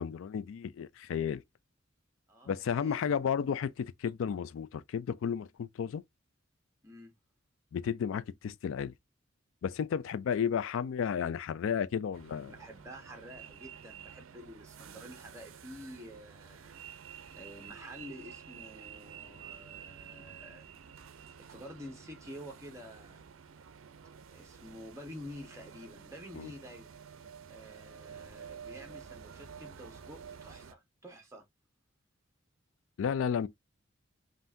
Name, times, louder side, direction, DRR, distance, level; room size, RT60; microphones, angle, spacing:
voice 1, 0.0-1.4 2.5-6.0 7.7-8.9 9.6-12.5 26.3-26.5 33.0-33.5, left 7 dB, 70° left, 0.3 m, -33 dB
voice 2, 2.3-3.0 6.8-7.1 12.4-16.8 17.3-20.7 21.4-23.2 24.3-26.9 27.5-31.4, equal, 15° right, 1.1 m, -49 dB
sound 1, 12.1-30.7, right 7 dB, 75° right, 0.5 m, -50 dB
5.5 x 2.6 x 2.5 m
head